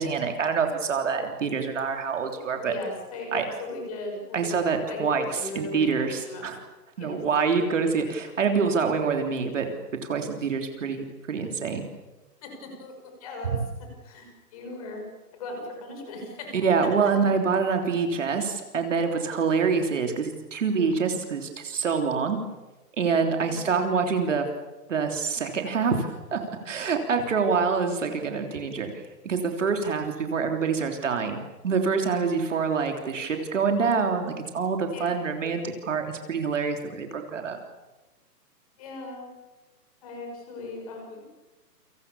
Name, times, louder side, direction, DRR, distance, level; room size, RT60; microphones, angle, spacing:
voice 1, 0.0-2.7 3.3-3.5 4.3-5.3 5.6-6.6 7.0-9.7 10.0-11.9 16.5-22.4 23.0-24.5 24.9-26.4 26.7-28.9 29.2-37.6, right 5 dB, 50° right, 4 dB, 3.5 m, -26 dB
voice 2, 2.7-4.5 4.9-5.0 5.3-6.5 7.0-7.2 12.4-12.9 13.2-13.5 14.0-15.0 15.3-16.5 23.4-23.6 34.9-35.3 38.8-39.3 40.0-41.3, left 2 dB, 20° left, 2 dB, 6.0 m, -38 dB
29.5 x 26.0 x 7.1 m, 1.1 s
hypercardioid pair, 180°, 48 cm